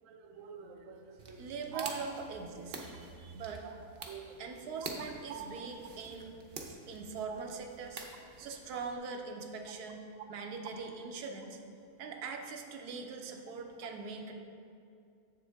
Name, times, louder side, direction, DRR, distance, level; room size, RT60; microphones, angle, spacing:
voice 1, 0.0-1.4 1.7-1.9 3.6-3.7 4.0-4.4 5.3-5.5 8.4-8.5, right 10 dB, 70° right, 4 dB, 1.0 m, -45 dB
sound 1, 1.2-9.0, right 3 dB, 45° right, 0.7 m, -48 dB
voice 2, 1.4-3.7 4.4-6.4 6.6-8.0 8.4-10.0 10.3-11.6 12.0-14.3, right 5 dB, 90° right, 3 dB, 1.2 m, -42 dB
7.6 x 7.2 x 3.4 m, 2.4 s
omnidirectional pair, 1.6 m